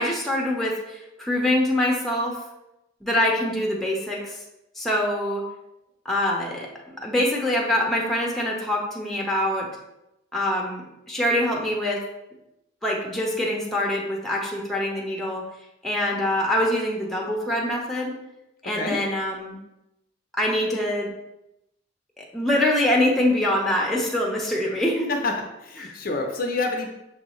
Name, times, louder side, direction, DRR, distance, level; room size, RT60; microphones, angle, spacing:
voice 1, 0.0-2.4 3.0-4.4 4.8-5.4 6.0-9.7 10.3-12.0 12.8-15.4 15.8-18.1 18.6-19.6 20.3-21.1 22.2-25.1 25.8-25.9, left 1 dB, ahead, -2 dB, 0.6 m, -24 dB
voice 2, 25.6-26.9, left 3 dB, 45° left, 2 dB, 0.5 m, -27 dB
6.3 x 2.6 x 3.0 m, 0.89 s
head